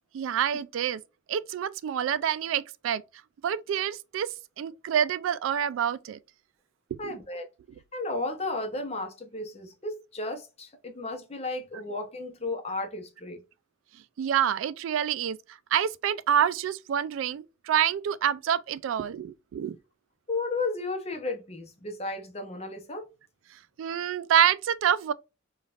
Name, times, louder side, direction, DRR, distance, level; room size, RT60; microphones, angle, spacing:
voice 1, 0.1-1.0 1.3-3.0 3.4-4.3 4.6-6.2 7.0-7.2 14.2-15.4 15.7-19.8 23.8-25.1, right 9 dB, 90° right, 0.3 m, -27 dB
voice 2, 7.0-7.5 7.9-13.4 20.3-23.1, left 2 dB, 30° left, 0.7 m, -34 dB
5.0 x 2.4 x 2.4 m
head